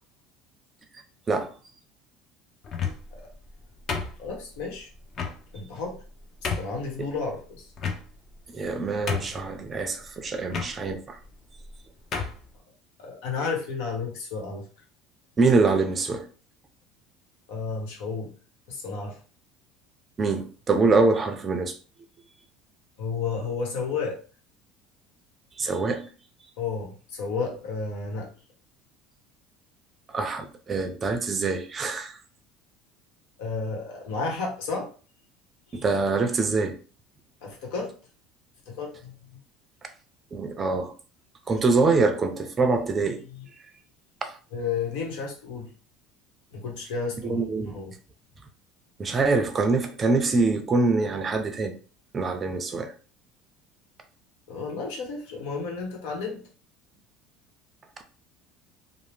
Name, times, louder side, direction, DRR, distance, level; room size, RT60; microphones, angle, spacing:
sound 1, 2.6-3.2 3.9-4.6 5.1-5.4 6.0-6.1 6.4-6.8 7.8-8.3 8.7-8.8 9.1-9.5 10.5-10.7 11.6-11.7 12.1-12.4, left 6 dB, 40° left, 0.6 m, -30 dB
voice 1, 4.2-4.9 5.5-6.0 6.4-7.7 13.0-14.7 17.5-18.3 18.7-19.2 23.0-24.2 26.6-28.3 33.4-34.9 37.4-37.9 38.7-39.1 43.3-43.5 44.5-45.7 46.5-47.9 54.5-56.4, left 4 dB, 85° left, 1.0 m, -32 dB
voice 2, 8.5-11.2 15.4-16.2 20.2-21.7 25.6-26.1 30.1-32.2 35.7-36.8 40.3-40.9 41.5-43.2 44.2-44.4 47.2-47.8 49.0-51.8 52.1-52.9, right 3 dB, 25° right, 0.4 m, -24 dB
2.7 x 2.0 x 3.2 m
cardioid pair, 130°, 0 cm